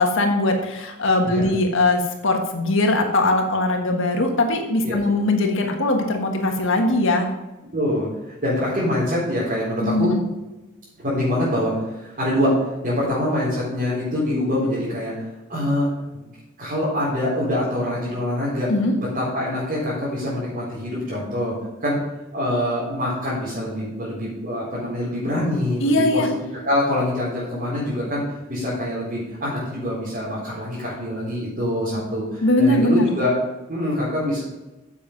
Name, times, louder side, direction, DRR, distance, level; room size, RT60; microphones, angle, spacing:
voice 1, 0.0-7.3 9.8-10.2 18.7-18.9 25.8-26.3 32.4-33.1, left 2 dB, 65° left, 3 dB, 1.5 m, -20 dB
voice 2, 7.7-10.1 11.0-15.1 15.5-15.9 16.1-16.3 16.6-18.7 19.1-21.6 21.8-22.0 22.3-28.2 28.5-33.3 33.7-34.4, left 1 dB, 45° right, -9 dB, 4.3 m, -24 dB
9.8 x 7.3 x 5.3 m, 1.0 s
head